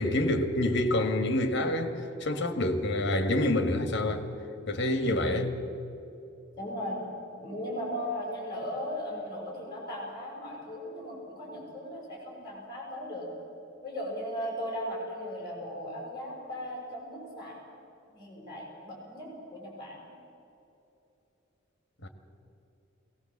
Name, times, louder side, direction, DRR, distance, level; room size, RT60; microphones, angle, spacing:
voice 1, 0.0-4.3 4.7-5.5 22.0-22.1, left 1 dB, 60° left, 1.9 m, -27 dB
voice 2, 6.5-7.0 7.4-13.3 13.8-17.6 18.1-20.1, equal, 20° left, 6.0 m, -37 dB
21.5 x 18.0 x 7.5 m
head